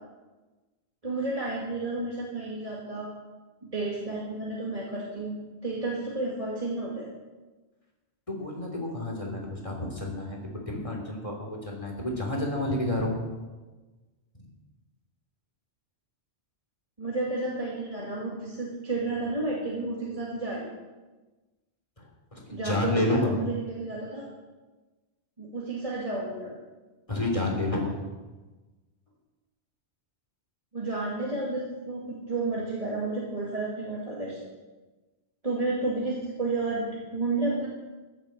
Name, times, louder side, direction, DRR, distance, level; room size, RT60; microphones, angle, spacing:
voice 1, 1.0-3.1 3.6-5.4 5.6-7.1 17.0-20.7 22.5-24.3 25.4-26.5 30.7-34.4 35.4-37.7, right 2 dB, 30° right, -5 dB, 2.4 m, -31 dB
voice 2, 8.3-10.4 10.7-13.1 22.3-23.4 27.1-28.0, left 2 dB, 30° left, 0 dB, 3.3 m, -29 dB
15.5 x 8.1 x 7.6 m, 1.2 s
omnidirectional pair, 1.2 m